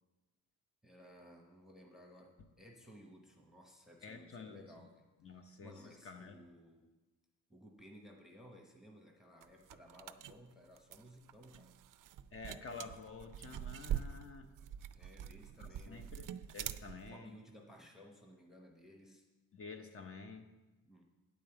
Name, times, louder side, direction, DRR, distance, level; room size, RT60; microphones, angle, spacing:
voice 1, 0.8-5.0 5.6-6.9 7.5-11.8 14.9-16.2 17.1-19.3 20.8-21.0, equal, ahead, 2 dB, 0.9 m, -58 dB
voice 2, 4.0-4.6 5.2-6.4 12.3-14.5 15.6-17.3 19.5-20.5, left 4 dB, 40° left, 6 dB, 0.8 m, -50 dB
sound 1, 9.4-17.1, right 10 dB, 65° right, 0.5 m, -44 dB
9.3 x 5.4 x 7.9 m, 1.1 s
wide cardioid pair, 145°, 35 cm